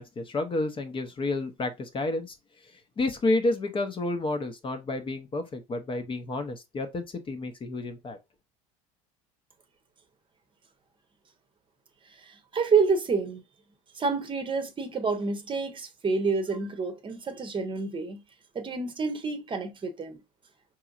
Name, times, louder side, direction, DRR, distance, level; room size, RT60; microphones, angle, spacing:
voice 1, 0.0-2.4 2.6-8.2, left 2 dB, 30° left, 0.8 m, -30 dB
voice 2, 12.2-13.4 14.0-18.2 18.5-20.2, right 4 dB, 30° right, 0.9 m, -28 dB
4.6 x 3.1 x 2.4 m
hypercardioid pair, 75°, 18 cm